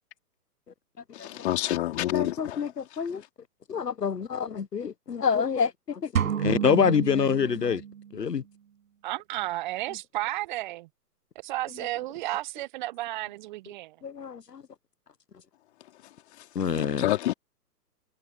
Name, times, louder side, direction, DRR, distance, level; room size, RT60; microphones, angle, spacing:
voice 1, 1.1-2.7 16.4-16.5 16.7-17.3, left 14 dB, 40° left, 4.0 m, -28 dB
voice 2, 2.1-3.2 3.7-7.8 8.1-8.4 14.0-14.6 16.5-17.1, left 6 dB, 80° left, 1.2 m, -27 dB
sound 1, 6.2-8.2, right 8 dB, 55° right, 5.7 m, -30 dB
voice 3, 9.0-10.9 11.4-14.0, right 17 dB, 30° right, 1.2 m, -33 dB
figure-of-eight pair, 125°, 48 cm